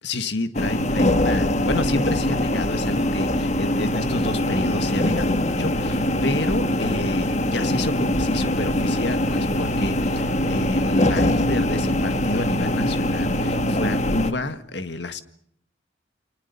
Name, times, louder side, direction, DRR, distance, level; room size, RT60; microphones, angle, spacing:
voice 1, 0.0-15.2, left 2 dB, 65° left, 10 dB, 1.8 m, -29 dB
sound 1, 0.5-14.3, left 1 dB, 35° left, 1.5 m, -23 dB
29.0 x 25.5 x 5.6 m, 0.69 s
head